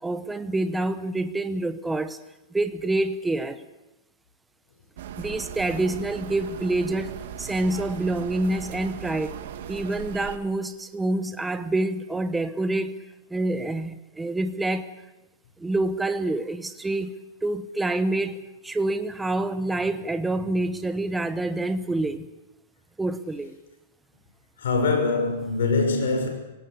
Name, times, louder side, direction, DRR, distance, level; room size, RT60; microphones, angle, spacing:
voice 1, 0.0-2.2 2.5-3.6 5.2-9.4 9.7-13.0 13.3-14.9 15.6-17.2 17.4-22.3 23.0-23.5, right 2 dB, 5° right, 9 dB, 1.0 m, -27 dB
sound 1, 5.0-10.4, right 10 dB, 65° right, 2.3 m, -38 dB
voice 2, 24.6-26.3, left 3 dB, 85° left, 3 dB, 6.3 m, -23 dB
26.0 x 18.0 x 8.3 m, 1.0 s
supercardioid pair, 150°, 0 cm